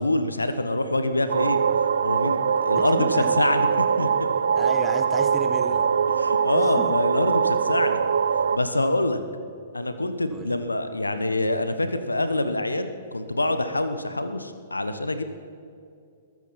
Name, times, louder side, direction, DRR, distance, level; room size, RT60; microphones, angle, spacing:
voice 1, 0.0-1.6 2.0-4.1 6.2-8.0 8.5-9.2 9.7-15.2, left 2 dB, 85° left, 10 dB, 1.2 m, -25 dB
sound 1, 1.3-8.6, right 7 dB, 65° right, 0.6 m, -22 dB
voice 2, 2.7-3.4 4.6-5.9 6.6-6.9 10.3-10.6, right 4 dB, 10° right, 6 dB, 1.5 m, -34 dB
22.0 x 13.5 x 4.3 m, 2.4 s
figure-of-eight pair, 115°, 0 cm